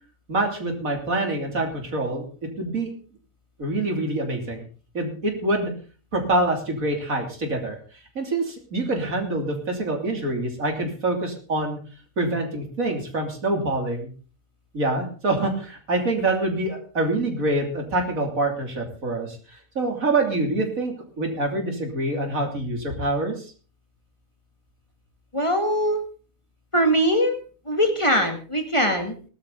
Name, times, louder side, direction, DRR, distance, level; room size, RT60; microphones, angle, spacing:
voice 1, 0.3-2.2 2.6-2.9 3.6-4.7 4.9-5.7 6.1-7.8 8.1-11.8 12.2-14.1 14.7-19.4 19.7-23.5, right 2 dB, 80° right, 2 dB, 3.5 m, -25 dB
voice 2, 25.3-26.0 26.7-27.4 27.7-29.1, equal, 20° left, 4 dB, 2.1 m, -21 dB
18.5 x 12.0 x 4.0 m, 0.39 s
omnidirectional pair, 1.4 m